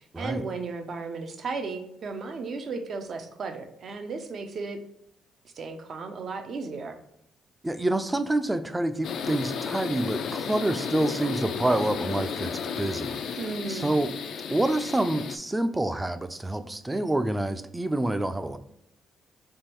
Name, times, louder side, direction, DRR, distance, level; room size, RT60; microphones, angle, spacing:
voice 1, 0.0-4.8 5.4-7.0 13.4-13.9, right 4 dB, 55° right, 6 dB, 0.6 m, -35 dB
voice 2, 7.6-13.4 13.7-14.1 14.5-18.6, right 1 dB, 15° right, 10 dB, 0.4 m, -27 dB
sound 1, 9.0-15.4, left 6 dB, 70° left, 0.4 m, -33 dB
3.6 x 3.0 x 4.3 m, 0.75 s
cardioid pair, 90°, 0 cm